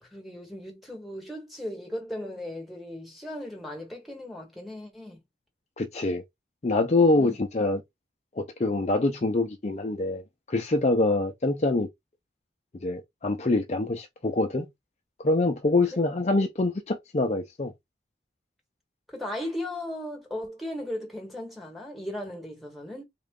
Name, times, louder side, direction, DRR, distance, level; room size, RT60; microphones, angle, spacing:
voice 1, 0.0-5.2 7.2-7.4 15.9-16.0 19.1-23.0, left 1 dB, ahead, 1.3 m, -37 dB
voice 2, 5.8-6.2 6.6-7.8 8.3-10.2 10.5-11.9 12.8-14.7 15.2-17.7, left 2 dB, 40° left, 0.5 m, -25 dB
3.7 x 2.4 x 3.6 m
head